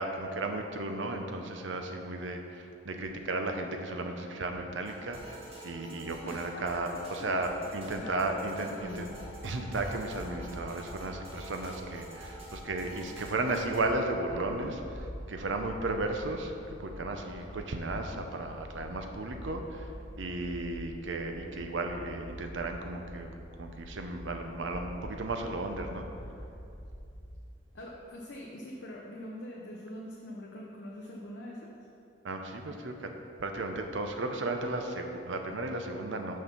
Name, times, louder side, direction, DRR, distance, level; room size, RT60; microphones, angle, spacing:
voice 1, 0.0-9.1 9.4-19.9 20.2-23.3 23.6-26.0 32.2-33.1 33.4-36.4, right 2 dB, 75° right, 4 dB, 0.7 m, -34 dB
sound 1, 4.9-13.8, right 2 dB, 30° right, 1.4 m, -48 dB
voice 2, 6.2-7.3 8.0-9.1 11.2-11.4 27.7-31.7, left 1 dB, 65° left, -3 dB, 0.7 m, -43 dB
sound 2, 8.8-27.3, equal, 40° left, 1.3 m, -46 dB
6.4 x 5.4 x 5.8 m, 2.6 s
head